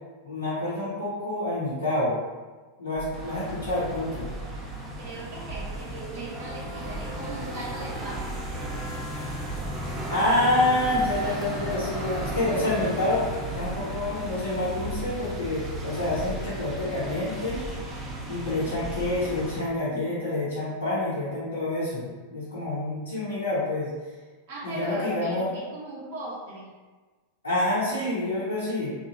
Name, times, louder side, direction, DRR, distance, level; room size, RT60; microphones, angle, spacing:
voice 1, 0.2-2.2 2.8-4.3 10.1-13.3 13.5-17.6 18.3-23.9 24.6-25.5 27.4-29.0, left 2 dB, 80° left, -12 dB, 0.9 m, -27 dB
sound 1, 3.0-19.8, right 2 dB, 20° left, 1.1 m, -43 dB
sound 2, 3.1-19.6, right 1 dB, 20° right, 0.5 m, -35 dB
voice 2, 5.0-8.4 24.5-26.7, right 2 dB, 50° right, -6 dB, 0.7 m, -38 dB
3.0 x 2.2 x 2.9 m, 1.3 s
figure-of-eight pair, 90°, 0 cm